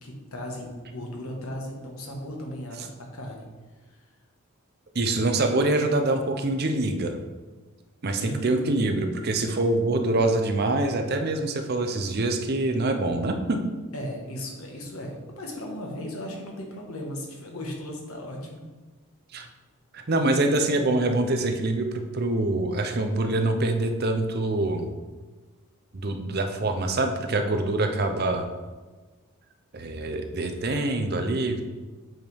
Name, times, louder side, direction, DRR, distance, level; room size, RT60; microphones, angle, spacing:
voice 1, 0.0-3.4 3.9-4.0 8.2-9.1 13.9-18.6, left 1 dB, 80° left, 0 dB, 1.3 m, -36 dB
voice 2, 4.9-7.2 8.0-13.7 19.3-19.5 19.9-24.9 25.9-28.4 29.7-31.6, right 2 dB, 45° right, 5 dB, 0.6 m, -25 dB
7.7 x 4.6 x 3.5 m, 1.3 s
head